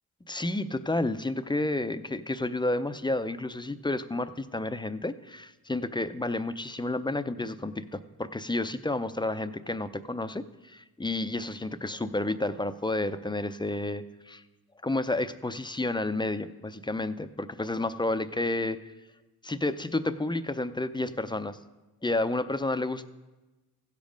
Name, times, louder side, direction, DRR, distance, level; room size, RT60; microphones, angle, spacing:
voice 1, 0.3-14.4 14.8-18.8 19.4-21.6 22.0-23.1, left 2 dB, 15° left, 11 dB, 0.5 m, -31 dB
15.5 x 5.3 x 5.1 m, 1.1 s
cardioid pair, 55°, 36 cm